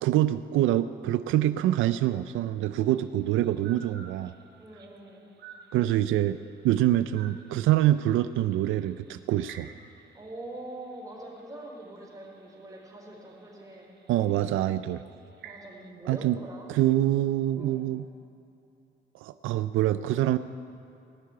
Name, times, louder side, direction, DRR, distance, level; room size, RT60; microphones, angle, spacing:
voice 1, 0.0-4.3 5.7-6.4 6.6-9.7 14.1-15.0 16.1-16.4 16.7-18.1 19.2-20.4, right 13 dB, 85° right, 12 dB, 0.4 m, -25 dB
sound 1, 2.7-15.9, right 6 dB, 55° right, 1.3 m, -54 dB
voice 2, 4.6-5.3 10.1-13.9 15.4-16.7 17.6-17.8, right 1 dB, 15° right, -2 dB, 4.3 m, -43 dB
18.0 x 6.6 x 9.7 m, 2.8 s
cardioid pair, 90°, 20 cm